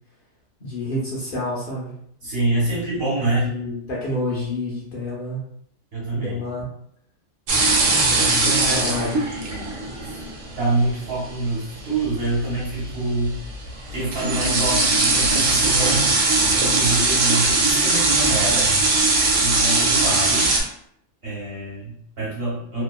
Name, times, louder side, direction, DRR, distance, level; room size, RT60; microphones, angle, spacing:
voice 1, 0.6-1.9 3.4-5.4 6.1-6.6 7.8-9.1, left 2 dB, 55° left, -5 dB, 0.8 m, -29 dB
voice 2, 2.2-3.5 5.9-6.4 8.4-9.8 10.1-10.2 10.5-13.4 13.9-16.1 16.6-18.7 19.4-20.5 21.2-22.8, right 2 dB, 55° right, -6 dB, 1.2 m, -26 dB
sound 1, 7.5-20.6, right 3 dB, 80° right, 1.0 m, -20 dB
2.7 x 2.2 x 2.3 m, 0.69 s
omnidirectional pair, 1.3 m